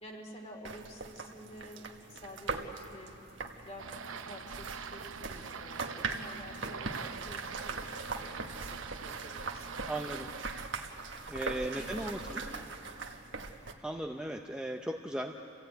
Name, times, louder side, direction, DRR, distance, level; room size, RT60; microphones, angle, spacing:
voice 1, 0.0-3.1 3.6-9.7 11.7-12.9, equal, 30° left, 1 dB, 3.0 m, -50 dB
sound 1, 0.6-13.7, right 4 dB, 60° right, 1.4 m, -41 dB
sound 2, 3.8-10.7, right 6 dB, 75° right, 0.8 m, -44 dB
voice 2, 9.9-10.3 11.3-12.2 13.8-15.3, right 1 dB, 5° right, 2 dB, 0.6 m, -36 dB
30.0 x 16.0 x 9.1 m, 2.8 s
head